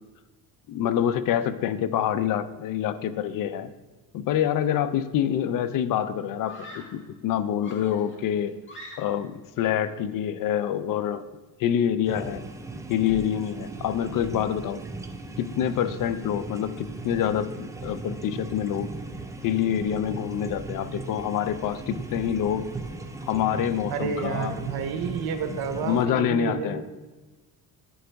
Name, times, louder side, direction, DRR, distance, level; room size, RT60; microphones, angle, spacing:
voice 1, 0.7-3.7 4.1-8.5 9.0-11.2 11.6-12.4 12.9-14.8 15.4-18.9 19.4-22.7 23.2-24.5 25.8-26.8, left 10 dB, 55° left, 13 dB, 0.5 m, -26 dB
Screaming, 6.4-7.1 7.6-9.4, left 1 dB, 30° left, 1.4 m, -45 dB
sound 1, 12.1-26.1, right 3 dB, 10° right, 0.3 m, -38 dB
voice 2, 23.9-26.9, right 6 dB, 65° right, 8 dB, 0.9 m, -30 dB
10.0 x 3.9 x 3.4 m, 1.2 s
cardioid pair, 110°, 41 cm